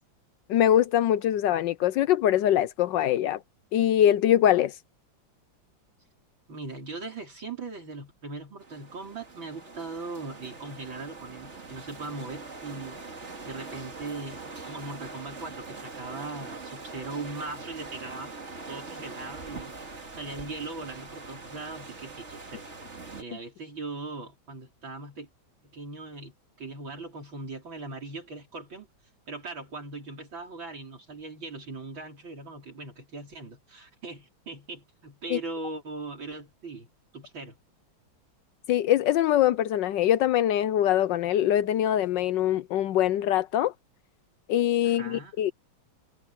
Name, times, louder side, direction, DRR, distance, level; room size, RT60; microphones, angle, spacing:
voice 1, 0.5-3.4 3.7-4.7 35.3-35.4 38.7-43.7 44.5-45.5, left 11 dB, 75° left, 1.2 m, -23 dB
voice 2, 6.5-18.3 18.7-22.7 23.2-25.3 25.7-28.9 29.3-36.9 37.1-37.6 44.8-45.3, right 3 dB, 70° right, 5.2 m, -40 dB
sound 1, 8.6-23.2, right 3 dB, 35° right, 2.6 m, -43 dB
omnidirectional pair, 2.2 m